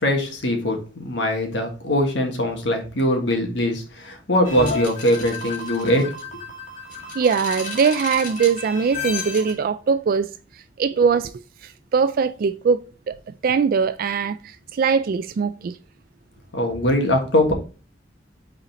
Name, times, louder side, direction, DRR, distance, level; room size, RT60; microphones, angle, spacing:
voice 1, 0.0-6.1 16.5-17.5, left 1 dB, 80° left, 1.6 m, -22 dB
sound 1, 4.4-9.5, left 3 dB, 45° left, 2.2 m, -32 dB
voice 2, 7.2-10.3 10.8-11.3 11.6-13.2 13.4-15.8, right 5 dB, 50° right, 0.3 m, -21 dB
5.7 x 4.2 x 4.1 m
head